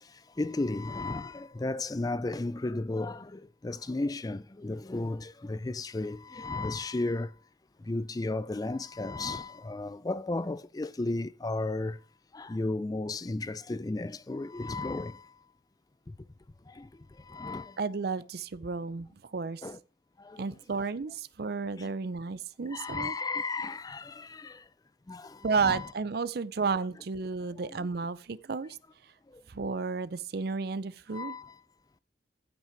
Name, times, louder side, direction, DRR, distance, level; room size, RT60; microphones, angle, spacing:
voice 1, 0.0-7.3 7.8-12.0 12.3-15.4 16.1-16.2 16.7-17.8 19.6-19.8 20.2-20.4 21.8-21.9 22.7-24.7 25.1-25.9 29.3-29.4 31.1-31.6, left 2 dB, 20° left, 0.4 m, -34 dB
voice 2, 17.8-19.7 20.4-23.1 25.4-28.8 29.5-31.4, right 4 dB, 55° right, 0.5 m, -32 dB
14.5 x 5.9 x 4.5 m
head